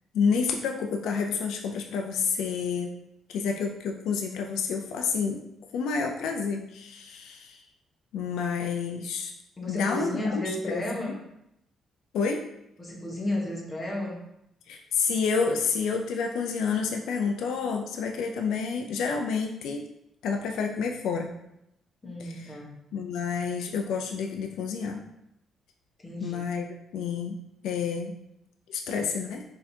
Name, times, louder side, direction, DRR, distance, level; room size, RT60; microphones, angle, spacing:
voice 1, 0.1-2.9 3.3-5.4 5.7-7.6 8.1-9.3 9.7-11.1 12.1-12.5 14.7-19.8 20.2-21.3 22.2-22.6 22.9-25.0 26.2-27.4 27.6-28.2 28.7-29.4, left 5 dB, 80° left, 3 dB, 0.3 m, -29 dB
voice 2, 9.6-11.1 12.8-14.2 22.0-22.8 26.0-26.5, left 1 dB, 25° left, -1 dB, 1.0 m, -32 dB
4.0 x 2.7 x 2.7 m, 0.81 s
cardioid pair, 90°, 0 cm